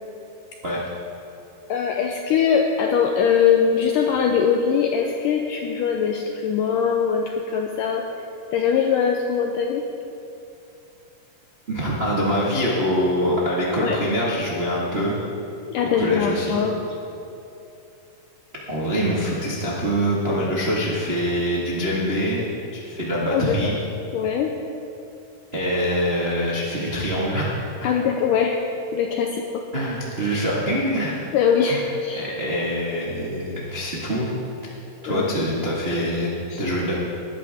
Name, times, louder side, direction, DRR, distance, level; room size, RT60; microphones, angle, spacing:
voice 1, 1.7-8.0 8.5-9.8 13.8-14.0 15.7-16.7 23.3-23.7 24.1-24.5 27.8-28.6 28.9-29.6 31.3-32.3 35.1-35.4 36.5-36.6, left 7 dB, 85° left, 2 dB, 1.9 m, -22 dB
voice 2, 11.7-15.2 16.0-16.6 18.7-22.4 22.7-23.8 25.5-27.5 27.8-27.9 29.7-31.2 31.6-31.8 32.1-34.3 35.0-36.3 36.6-36.9, equal, 80° right, -6 dB, 0.5 m, -24 dB
20.0 x 10.5 x 3.6 m, 2.8 s
omnidirectional pair, 4.6 m